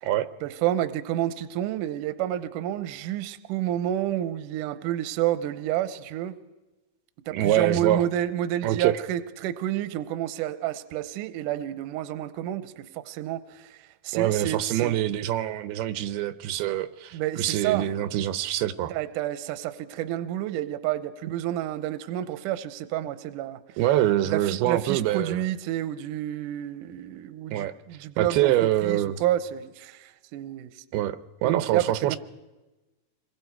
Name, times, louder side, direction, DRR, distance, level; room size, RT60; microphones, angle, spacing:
voice 1, 0.4-6.3 7.3-13.8 14.0-15.0 17.1-17.9 18.9-23.6 24.3-28.5 28.8-30.7 31.4-32.2, right 12 dB, 75° right, 12 dB, 2.1 m, -29 dB
voice 2, 7.3-8.0 8.6-9.0 14.1-18.9 23.8-25.4 27.5-27.7 28.2-29.2 30.9-32.2, right 13 dB, 90° right, 13 dB, 2.8 m, -25 dB
27.0 x 22.0 x 4.6 m, 1.1 s
omnidirectional pair, 4.4 m